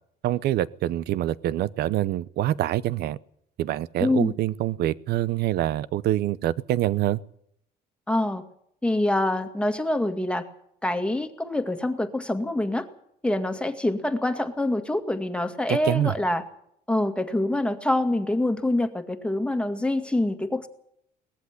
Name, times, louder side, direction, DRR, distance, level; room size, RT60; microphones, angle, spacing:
voice 1, 0.2-3.2 3.6-7.2 15.7-16.1, right 13 dB, 70° right, 0.8 m, -25 dB
voice 2, 4.0-4.3 8.1-8.4 8.8-10.5 10.8-12.9 13.2-16.4 16.9-20.7, left 1 dB, 5° left, 2.0 m, -25 dB
19.5 x 15.0 x 9.8 m
cardioid pair, 110°, 17 cm